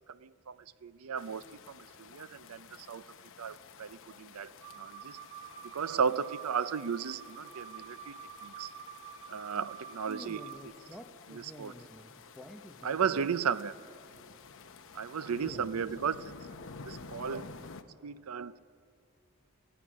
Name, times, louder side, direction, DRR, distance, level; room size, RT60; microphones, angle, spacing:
voice 1, 0.1-0.6 0.8-3.0 3.4-4.5 4.8-5.2 5.7-8.1 8.4-8.7 9.3-10.5 11.3-11.7 12.8-13.7 14.9-16.3 16.8-17.5 18.0-18.6, right 6 dB, 75° right, 16 dB, 0.5 m, -35 dB
sound 1, 1.2-17.8, left 4 dB, 60° left, 0.9 m, -52 dB
sound 2, 4.6-10.6, right 9 dB, 55° right, 1.2 m, -48 dB
voice 2, 10.1-12.1 12.4-13.3 15.4-15.8, equal, ahead, 3 dB, 0.9 m, -49 dB
23.5 x 18.0 x 6.3 m, 2.4 s
head